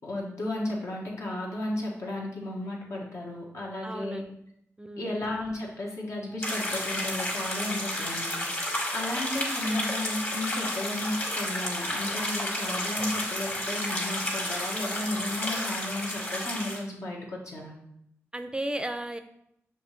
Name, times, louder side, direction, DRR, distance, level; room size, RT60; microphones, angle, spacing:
voice 1, 0.0-4.2 5.0-8.5 8.9-17.7, left 1 dB, 65° left, -2 dB, 1.2 m, -34 dB
voice 2, 3.8-4.3 4.8-5.2 18.3-19.2, right 1 dB, 15° right, 8 dB, 0.4 m, -34 dB
sound 1, 6.4-16.8, left 1 dB, 35° left, 1.6 m, -31 dB
6.0 x 2.8 x 3.1 m, 0.76 s
cardioid pair, 50°, 5 cm